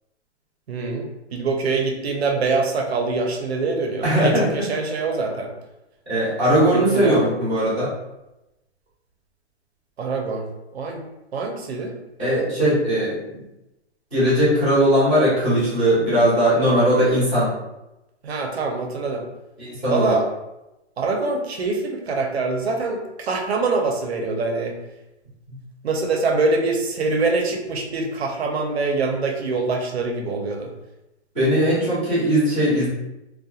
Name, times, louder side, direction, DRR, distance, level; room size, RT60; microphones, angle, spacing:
voice 1, 0.7-5.5 6.7-7.2 10.0-10.5 10.7-11.0 11.3-12.0 18.2-19.2 19.9-20.2 21.0-24.8 25.8-30.7, right 3 dB, 60° right, 2 dB, 0.6 m, -24 dB
voice 2, 4.0-4.5 6.1-7.9 12.2-13.4 14.1-17.5 19.6-20.1 31.3-32.9, equal, 5° left, -20 dB, 0.4 m, -19 dB
2.7 x 2.2 x 2.3 m, 0.94 s
hypercardioid pair, 170°, 35 cm